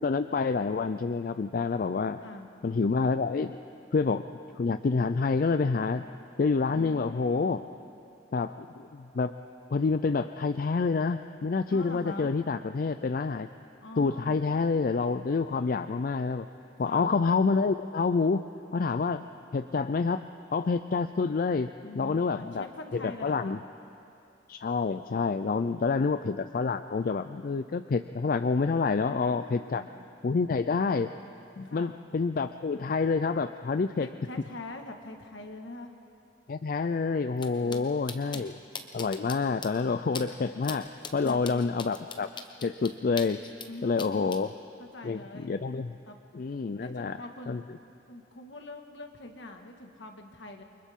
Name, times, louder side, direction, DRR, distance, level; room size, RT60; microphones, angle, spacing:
voice 1, 0.0-2.2 2.6-3.6 3.9-4.2 4.6-6.0 6.4-7.6 8.3-9.4 9.7-13.5 14.0-16.5 16.8-18.4 18.7-19.2 19.5-20.2 20.5-21.7 22.0-22.7 22.9-23.6 24.5-29.8 30.2-31.1 31.6-34.1 36.5-38.6 38.9-42.3 42.6-43.4 43.8-44.5 45.0-46.0 46.3-47.2 47.5-47.6, left 4 dB, 50° left, 10 dB, 0.4 m, -28 dB
voice 2, 6.7-7.6 11.7-12.3 13.8-14.4 16.8-17.1 21.8-23.6 25.6-26.1 28.9-29.9 31.6-31.9 34.0-35.9 41.2-41.6 43.6-44.3 44.8-45.5 46.1-46.2 46.8-47.6 48.1-50.6, left 2 dB, 70° left, 4 dB, 1.7 m, -44 dB
sound 1, 37.4-37.5 37.7-37.8 38.1-38.4 38.7-39.3 39.6-39.7 40.1-40.2 40.6-40.8 41.0-43.7 44.0-44.4, left 5 dB, 25° left, 1.0 m, -39 dB
29.0 x 24.0 x 3.7 m, 2.6 s
head